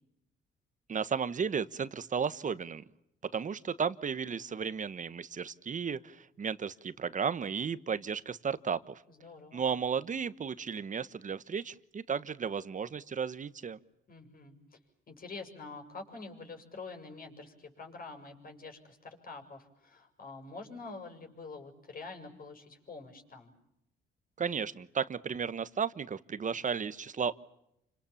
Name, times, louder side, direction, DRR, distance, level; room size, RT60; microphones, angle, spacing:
voice 1, 0.9-2.8 3.3-9.0 9.5-13.8 24.4-27.4, right 6 dB, 40° right, 15 dB, 1.2 m, -34 dB
voice 2, 9.1-9.7 14.1-14.8 15.1-23.5, left 3 dB, 45° left, 4 dB, 6.8 m, -46 dB
29.5 x 26.5 x 7.3 m, 0.81 s
cardioid pair, 90°, 20 cm